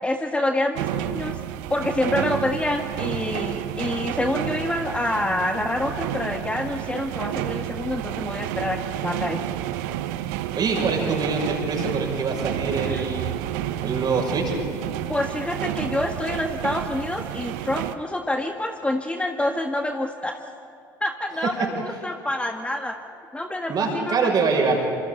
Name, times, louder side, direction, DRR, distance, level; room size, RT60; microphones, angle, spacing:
voice 1, 0.0-1.4 1.7-9.4 12.8-13.0 15.1-20.4 21.0-22.9 23.3-24.3, left 1 dB, 10° left, 4 dB, 1.5 m, -27 dB
sound 1, 0.8-18.0, right 13 dB, 65° right, 0.9 m, -30 dB
voice 2, 10.5-13.3 13.8-14.6 21.4-21.7 23.7-24.8, right 4 dB, 40° right, 1 dB, 6.1 m, -24 dB
28.0 x 26.5 x 3.9 m, 2.6 s
figure-of-eight pair, 60°, 11 cm